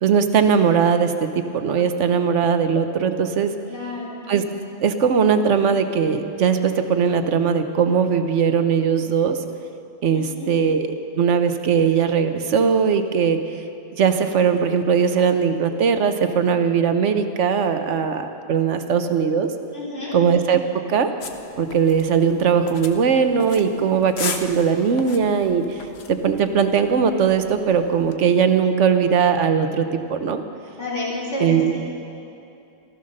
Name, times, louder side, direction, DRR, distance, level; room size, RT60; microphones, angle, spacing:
voice 1, 0.0-3.5 4.3-4.4 4.8-9.4 10.0-13.4 14.0-19.5 20.1-21.1 21.6-25.6 26.1-30.4 31.4-31.7, right 6 dB, 85° right, 8 dB, 1.2 m, -19 dB
voice 2, 3.7-4.1 10.1-10.5 19.7-20.1 30.8-31.8, left 2 dB, 80° left, -7 dB, 4.6 m, -30 dB
sound 1, 21.2-28.1, left 5 dB, 65° left, 1.2 m, -37 dB
15.5 x 14.0 x 6.5 m, 2.6 s
omnidirectional pair, 1.2 m